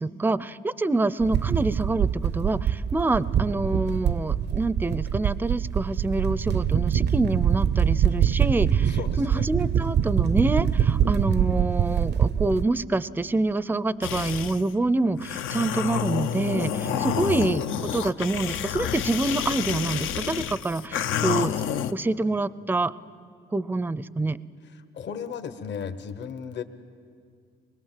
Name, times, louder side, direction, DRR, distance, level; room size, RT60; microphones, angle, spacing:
voice 1, 0.0-17.6 17.9-21.5 21.9-22.9 23.5-24.4, right 2 dB, 10° right, 17 dB, 0.5 m, -26 dB
sound 1, 1.2-12.6, right 8 dB, 60° right, 0.6 m, -24 dB
voice 2, 8.8-9.5 16.9-17.3 24.6-26.6, left 7 dB, 60° left, 8 dB, 1.3 m, -35 dB
sound 2, 14.0-14.6 15.2-21.9, left 9 dB, 85° left, 0.8 m, -29 dB
24.0 x 21.5 x 7.6 m, 2.2 s
cardioid pair, 90°, 20 cm